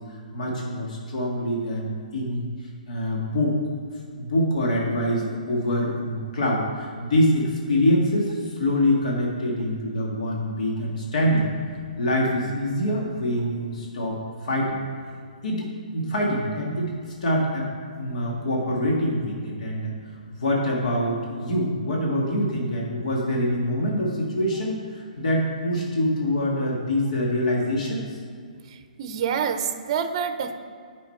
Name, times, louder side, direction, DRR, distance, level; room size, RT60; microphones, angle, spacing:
voice 1, 0.0-2.5 2.9-3.5 4.2-11.5 12.0-14.8 15.4-15.6 15.9-16.9 17.2-17.7 18.0-19.9 20.3-28.2, left 1 dB, 60° left, -2 dB, 1.8 m, -25 dB
voice 2, 28.7-30.5, right 7 dB, 40° right, 9 dB, 0.7 m, -27 dB
9.6 x 5.7 x 4.4 m, 2.2 s
hypercardioid pair, 160°, 4 cm